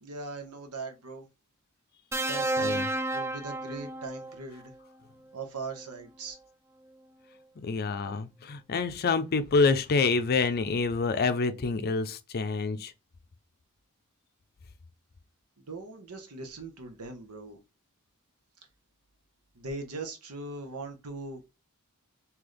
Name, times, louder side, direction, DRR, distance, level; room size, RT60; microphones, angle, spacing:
voice 1, 0.0-1.3 2.2-4.7 5.3-6.4 15.6-17.6 19.5-21.6, right 3 dB, 90° right, 1.0 m, -40 dB
sound 1, 2.1-4.4 5.7-5.9, right 2 dB, 15° right, 0.5 m, -31 dB
voice 2, 7.6-12.9, left 4 dB, 45° left, 0.5 m, -27 dB
3.2 x 2.9 x 3.9 m
head